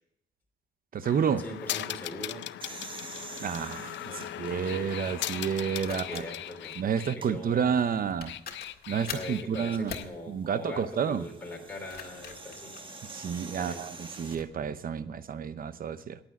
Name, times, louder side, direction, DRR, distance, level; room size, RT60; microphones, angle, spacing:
voice 1, 0.9-1.4 3.4-6.2 6.8-8.3 8.9-9.9 10.3-11.3 13.1-16.2, right 7 dB, 45° right, 14 dB, 0.8 m, -30 dB
sound 1, 1.0-7.2 8.1-10.0, left 12 dB, 70° left, 0.5 m, -38 dB
voice 2, 1.4-2.4 4.1-4.9 5.9-6.7 7.2-7.7 9.1-12.7 13.6-13.8, left 1 dB, 10° left, -1 dB, 3.1 m, -42 dB
sound 2, 2.6-5.5 6.1-6.2 7.1-7.3 9.5-14.4, right 3 dB, 25° right, 1.4 m, -47 dB
sound 3, 5.8-6.8 7.8-7.9 8.2-9.4 9.9-10.1 11.7-13.5 14.1-14.5, left 6 dB, 50° left, 1.8 m, -43 dB
9.9 x 9.1 x 7.1 m, 0.79 s
cardioid pair, 90°, 20 cm